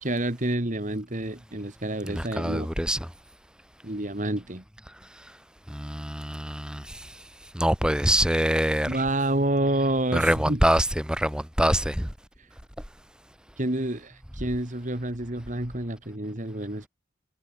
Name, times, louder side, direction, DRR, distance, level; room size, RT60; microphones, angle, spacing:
voice 1, 0.0-2.7 3.8-4.6 8.9-10.6 13.6-16.9, right 1 dB, 40° right, 2.3 m, -28 dB
voice 2, 2.0-3.1 5.7-7.1 7.5-9.0 10.1-12.1, equal, 5° right, 3.2 m, -25 dB
head